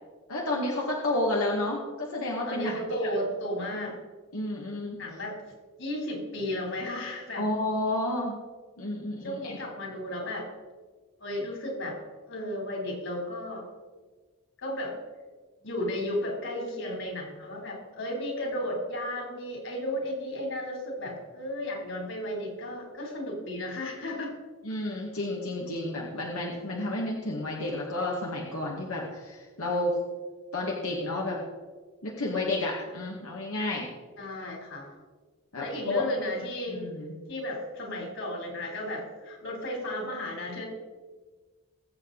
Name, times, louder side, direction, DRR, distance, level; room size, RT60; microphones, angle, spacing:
voice 1, 0.3-2.7 3.7-3.9 4.3-5.0 7.3-8.4 8.8-9.6 24.6-30.0 30.5-31.4 32.0-33.9 35.5-36.0 36.7-37.1, left 2 dB, 90° left, -2 dB, 1.9 m, -31 dB
voice 2, 2.5-3.9 5.0-5.4 5.8-7.5 9.2-10.5 11.2-12.0 12.3-13.7 14.6-15.0 15.6-24.3 34.2-34.9 35.6-36.8 37.3-40.7, left 1 dB, 60° left, 1 dB, 3.7 m, -34 dB
21.0 x 8.0 x 4.1 m, 1.4 s
head